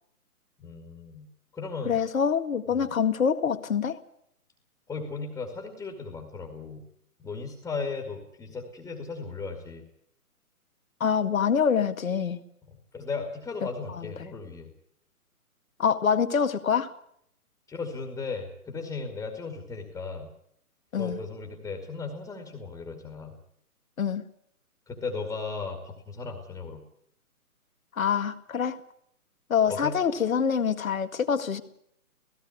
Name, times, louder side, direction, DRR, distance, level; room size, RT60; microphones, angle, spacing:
voice 1, 0.6-1.3 1.5-2.0 2.7-2.9 4.9-6.8 7.2-9.8 12.7-14.7 17.7-20.3 21.0-23.3 24.9-26.8 29.7-29.9, left 4 dB, 5° left, 3 dB, 2.2 m, -36 dB
voice 2, 1.9-4.0 11.0-12.4 13.9-14.1 15.8-16.9 20.9-21.2 24.0-24.2 28.0-28.8 29.5-31.6, left 7 dB, 60° left, 9 dB, 2.1 m, -25 dB
17.0 x 16.5 x 9.6 m, 0.71 s
figure-of-eight pair, 140°, 45 cm